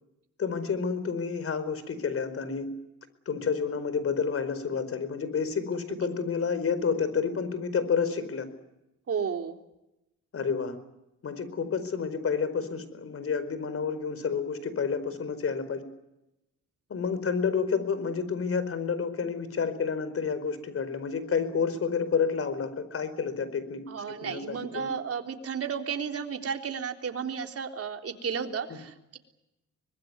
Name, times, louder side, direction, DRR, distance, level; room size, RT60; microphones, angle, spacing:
voice 1, 0.4-2.7 3.3-8.5 10.3-10.8 11.2-15.8 16.9-23.8 24.1-24.9 28.7-28.8, left 6 dB, 50° left, 13 dB, 4.7 m, -29 dB
voice 2, 9.1-9.6 23.9-29.2, right 6 dB, 50° right, 4 dB, 3.5 m, -33 dB
24.5 x 21.0 x 9.4 m, 0.92 s
cardioid pair, 90°, 30 cm